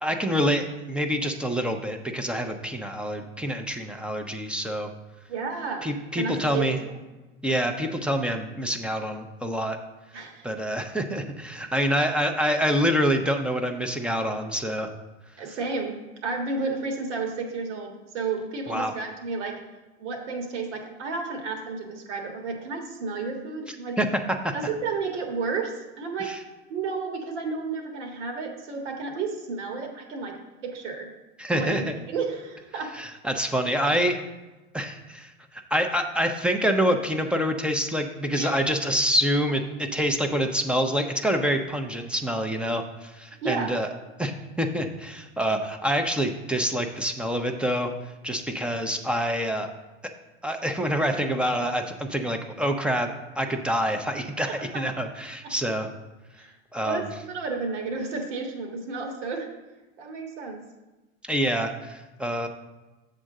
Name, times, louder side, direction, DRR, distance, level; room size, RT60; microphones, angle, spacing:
voice 1, 0.0-4.9 5.8-6.8 7.4-9.8 10.4-14.9 18.7-18.9 24.0-24.1 24.4-24.5 26.2-26.4 31.4-31.9 32.9-34.2 34.7-43.9 44.2-47.9 48.2-49.7 50.4-53.1 53.3-55.9 56.7-57.1 61.3-62.5, equal, 5° right, 5 dB, 0.6 m, -26 dB
voice 2, 5.3-5.9 6.2-6.8 10.1-10.5 15.4-19.6 20.0-24.0 24.5-26.3 26.7-31.1 31.5-32.9 38.3-38.6 43.4-43.8 54.6-54.8 56.4-56.5 56.8-59.5 60.0-60.6, right 4 dB, 80° right, 2 dB, 1.7 m, -32 dB
7.7 x 3.8 x 6.4 m, 1.1 s
supercardioid pair, 120°, 35 cm